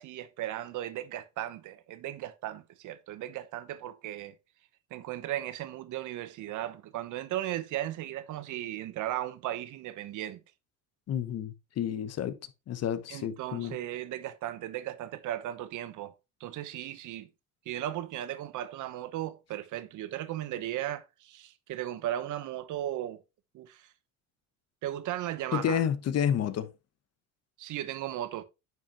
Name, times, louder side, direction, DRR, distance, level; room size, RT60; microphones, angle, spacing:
voice 1, 0.0-4.3 4.9-10.4 13.1-16.1 16.4-17.3 17.7-23.2 23.5-23.9 24.8-25.8 27.6-28.4, right 13 dB, 65° right, 1.0 m, -36 dB
voice 2, 11.1-12.4 12.7-13.8 25.5-26.7, left 9 dB, 50° left, 1.0 m, -30 dB
9.2 x 5.4 x 2.9 m
cardioid pair, 100°, 33 cm